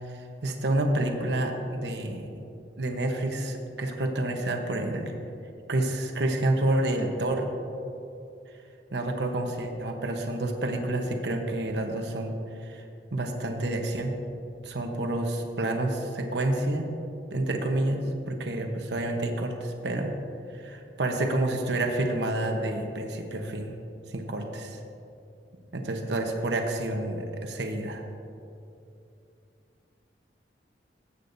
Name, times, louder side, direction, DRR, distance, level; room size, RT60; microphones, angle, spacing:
voice 1, 0.2-2.3 2.8-5.1 5.7-7.5 8.9-12.3 12.6-12.8 13.1-14.1 14.6-16.9 17.3-20.2 20.5-23.8 24.1-24.8 25.7-28.0, right 1 dB, 75° right, 3 dB, 1.0 m, -29 dB
18.0 x 8.4 x 2.6 m, 2.6 s
head